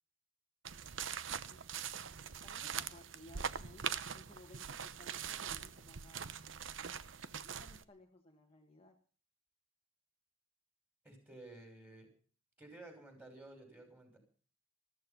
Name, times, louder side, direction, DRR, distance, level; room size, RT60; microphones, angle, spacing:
sound 1, 0.6-7.8, right 8 dB, 70° right, 0.8 m, -42 dB
voice 1, 2.2-6.3 7.3-9.0, left 1 dB, 30° left, 2 dB, 1.3 m, -60 dB
voice 2, 11.0-12.1 12.6-14.2, right 2 dB, 10° right, 4 dB, 5.9 m, -54 dB
14.5 x 14.0 x 5.8 m, 0.41 s
head